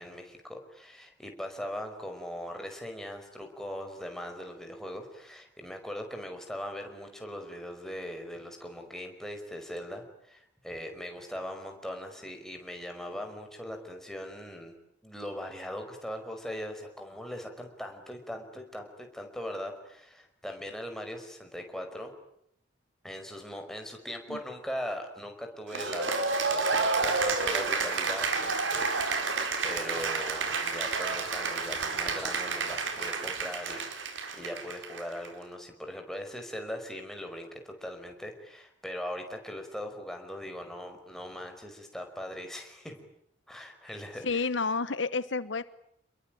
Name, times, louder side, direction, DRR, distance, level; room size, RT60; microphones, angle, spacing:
voice 1, 0.0-14.7 15.0-22.1 23.0-43.0 43.5-44.5, equal, ahead, 4 dB, 5.1 m, -40 dB
Cheering / Applause, 25.7-35.3, right 4 dB, 80° right, 4.6 m, -30 dB
voice 2, 44.2-45.6, left 4 dB, 70° left, 14 dB, 1.1 m, -30 dB
29.0 x 22.0 x 9.1 m, 0.74 s
head